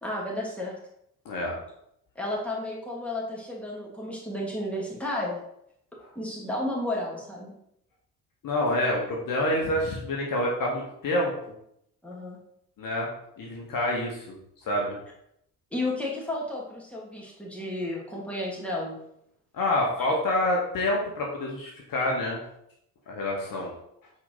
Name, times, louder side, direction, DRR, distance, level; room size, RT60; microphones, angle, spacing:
voice 1, 0.0-0.7 2.1-5.4 6.1-7.5 12.0-12.4 15.7-19.0 20.0-20.1, left 1 dB, 5° left, -4 dB, 3.2 m, -32 dB
voice 2, 1.3-1.6 6.0-6.1 8.4-11.3 12.8-13.1 13.4-14.4 14.6-15.0 19.5-22.4 23.1-23.7, left 1 dB, 45° left, -2 dB, 2.0 m, -27 dB
9.7 x 4.5 x 4.1 m, 0.75 s
figure-of-eight pair, 50°, 47 cm